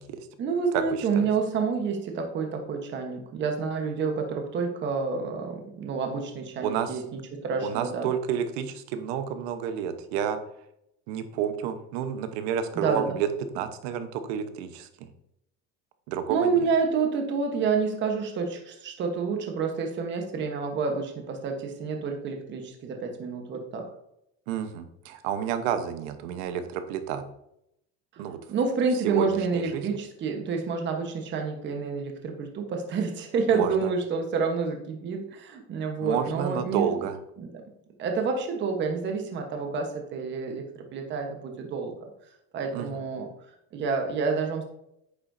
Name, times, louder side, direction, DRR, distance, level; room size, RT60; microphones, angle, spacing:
voice 1, 0.4-8.1 12.7-13.2 16.3-23.9 28.1-28.2 28.5-36.9 37.4-37.6 38.0-42.1 42.5-43.3 43.7-44.6, right 5 dB, 35° right, 4 dB, 1.2 m, -29 dB
voice 2, 6.6-7.0 7.6-10.4 11.1-13.3 13.5-14.9 16.1-16.7 24.5-27.2 28.2-28.4 29.0-29.3 29.5-29.8 33.5-33.7 36.0-37.2 42.7-42.9, right 9 dB, 90° right, 9 dB, 1.1 m, -30 dB
9.6 x 7.1 x 2.7 m, 0.79 s
cardioid pair, 155°, 32 cm